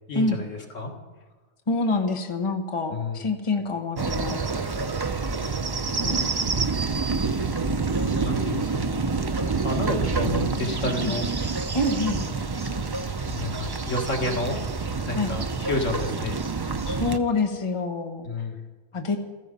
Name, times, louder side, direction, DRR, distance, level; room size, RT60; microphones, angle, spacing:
voice 1, 0.1-0.9 2.9-3.3 5.4-5.6 6.1-6.3 8.1-9.0 9.6-11.3 13.2-14.6 15.0-16.4 18.2-18.6, left 2 dB, 85° left, 1 dB, 2.3 m, -31 dB
voice 2, 1.7-4.4 6.0-6.3 11.0-11.2 11.7-12.2 15.2-15.3 16.9-18.3 18.9-19.2, left 3 dB, 25° left, 4 dB, 1.2 m, -26 dB
sound 1, 4.0-17.2, right 4 dB, 30° right, 0.4 m, -27 dB
15.0 x 14.0 x 5.4 m, 1.2 s
omnidirectional pair, 1.3 m